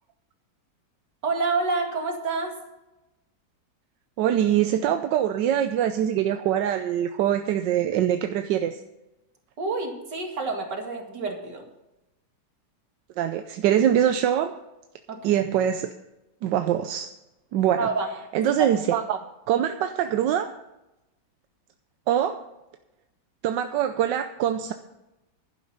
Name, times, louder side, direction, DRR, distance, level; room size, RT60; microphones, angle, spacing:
voice 1, 1.2-2.5 9.6-11.6 15.1-15.4 17.8-18.1 18.6-18.7, right 3 dB, 70° right, 2 dB, 2.7 m, -28 dB
voice 2, 4.2-8.8 13.2-14.5 15.2-15.9 16.4-17.1 17.5-17.9 18.3-20.5 22.1-22.4 23.4-24.7, right 10 dB, 85° right, 8 dB, 1.3 m, -23 dB
11.5 x 10.5 x 5.5 m, 0.94 s
omnidirectional pair, 1.9 m